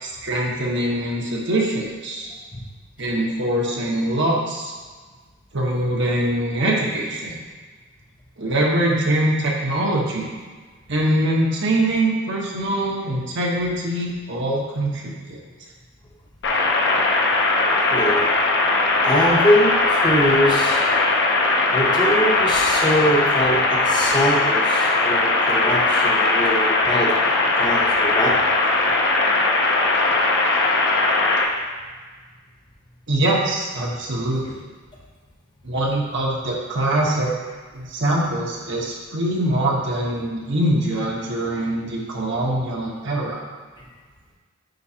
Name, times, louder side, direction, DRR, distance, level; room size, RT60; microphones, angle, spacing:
voice 1, 0.0-2.3 3.0-4.7 5.5-7.4 8.4-10.3 10.9-15.4 33.1-34.6 35.6-37.3 37.7-43.4, right 1 dB, 60° right, -3 dB, 1.2 m, -23 dB
voice 2, 2.3-2.6 17.9-18.3 19.0-20.8 21.7-27.1 27.5-28.4 43.8-43.9, equal, 25° left, -2 dB, 1.0 m, -22 dB
sound 1, 16.4-31.4, left 3 dB, 60° left, 0.8 m, -19 dB
9.3 x 4.5 x 2.9 m, 1.4 s
head